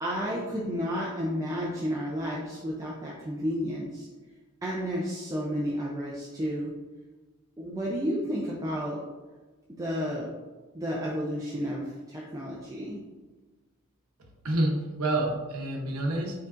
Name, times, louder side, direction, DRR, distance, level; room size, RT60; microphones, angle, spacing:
voice 1, 0.0-4.1 4.6-6.7 7.6-9.0 9.8-10.3 10.7-13.0, equal, 15° right, -4 dB, 0.4 m, -31 dB
voice 2, 14.2-16.5, right 1 dB, 85° right, 1 dB, 0.8 m, -29 dB
4.8 x 3.8 x 2.5 m, 1.3 s
head